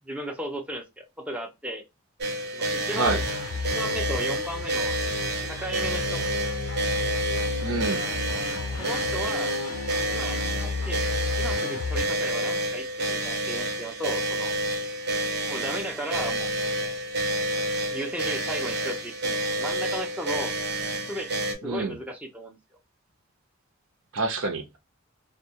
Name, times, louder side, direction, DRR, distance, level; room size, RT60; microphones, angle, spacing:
voice 1, 0.0-1.8 2.5-3.2 3.7-5.0 5.5-6.3 8.8-9.5 10.1-11.0 11.4-14.5 15.5-16.5 17.9-20.5 21.1-22.6, right 1 dB, 5° right, 0.4 m, -35 dB
sound 1, 2.2-21.6, right 1 dB, 55° right, 0.7 m, -29 dB
sound 2, 3.0-12.1, left 4 dB, 85° left, 0.5 m, -33 dB
voice 2, 7.6-8.1 21.6-22.0 24.1-24.8, right 3 dB, 85° right, 0.7 m, -27 dB
2.2 x 2.1 x 2.7 m
head